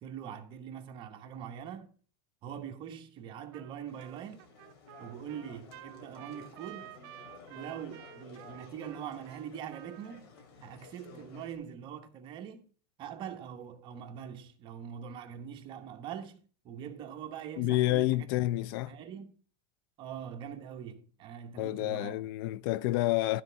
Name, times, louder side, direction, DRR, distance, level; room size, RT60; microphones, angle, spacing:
voice 1, 0.0-1.9 2.4-4.5 5.0-7.0 7.5-10.3 10.6-12.7 13.0-18.3 18.9-19.4 20.0-22.2, right 8 dB, 40° right, 1.1 m, -43 dB
Trumpet, 3.5-3.7 4.0-10.2, right 16 dB, 70° right, 0.6 m, -51 dB
sound 1, 3.9-11.6, left 4 dB, 85° left, 2.6 m, -54 dB
voice 2, 17.6-18.9 21.6-23.4, left 16 dB, 65° left, 0.4 m, -29 dB
12.5 x 4.2 x 5.7 m
supercardioid pair, 145°, 13 cm